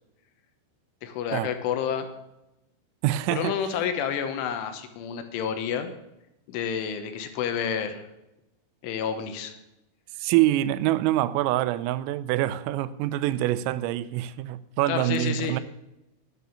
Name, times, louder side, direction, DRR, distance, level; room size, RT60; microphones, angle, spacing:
voice 1, 1.0-2.1 3.3-5.9 6.5-8.1 8.8-9.5 14.9-15.6, left 7 dB, 75° left, 3.3 m, -29 dB
voice 2, 3.0-3.5 10.2-15.6, right 14 dB, 85° right, 3.2 m, -25 dB
11.0 x 9.1 x 7.0 m
omnidirectional pair, 5.9 m